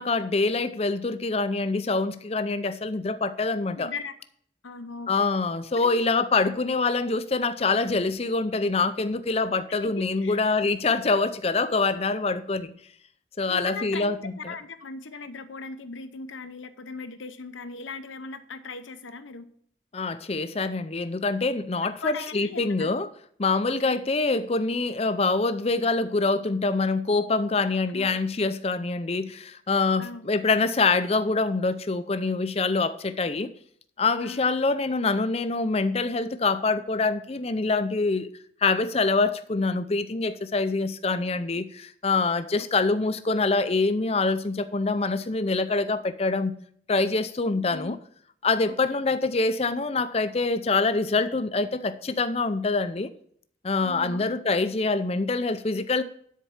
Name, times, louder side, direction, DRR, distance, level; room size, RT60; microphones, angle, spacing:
voice 1, 0.0-3.9 5.1-12.7 13.4-14.5 19.9-23.1 23.4-33.5 34.0-38.3 38.6-46.5 46.9-48.0 48.4-53.1 53.6-56.0, left 3 dB, 30° left, 0.5 m, -25 dB
voice 2, 3.8-4.1 4.6-5.3 5.8-6.0 9.8-10.4 13.5-19.5 22.0-22.9 23.7-24.0 27.9-28.2 30.0-30.3 34.2-34.5 47.5-48.0 48.6-49.0 53.8-54.3, left 4 dB, 85° left, 0.8 m, -39 dB
10.0 x 4.6 x 7.1 m
head